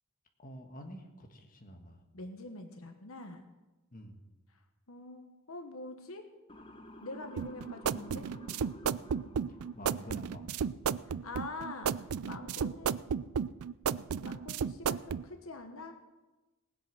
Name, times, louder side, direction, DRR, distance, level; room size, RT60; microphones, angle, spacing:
voice 1, 0.4-2.0 3.9-4.2 9.5-10.7, equal, 40° left, 4 dB, 1.5 m, -49 dB
voice 2, 2.1-3.5 4.5-6.2 7.0-8.3 11.0-13.0 14.2-15.9, left 2 dB, 70° left, 6 dB, 1.2 m, -45 dB
Motor vehicle (road) / Siren, 6.5-10.6, left 1 dB, 25° left, 1.1 m, -52 dB
sound 1, 7.4-15.2, right 7 dB, 85° right, 0.4 m, -33 dB
19.0 x 8.0 x 6.1 m, 1.1 s
head